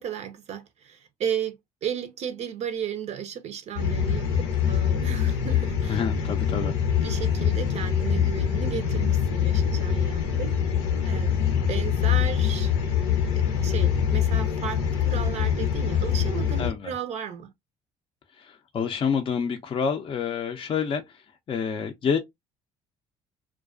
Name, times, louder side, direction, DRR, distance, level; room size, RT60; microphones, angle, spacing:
voice 1, 0.0-1.6 1.8-6.0 7.0-10.6 11.0-11.3 11.7-12.7 13.3-17.5, right 8 dB, 50° right, 0.4 m, -34 dB
sound 1, 3.8-16.7, left 8 dB, 90° left, 0.7 m, -24 dB
voice 2, 5.9-6.7 16.6-16.9 18.4-21.2 21.5-22.2, left 6 dB, 40° left, 0.4 m, -28 dB
2.3 x 2.2 x 2.4 m
hypercardioid pair, 65°, 14 cm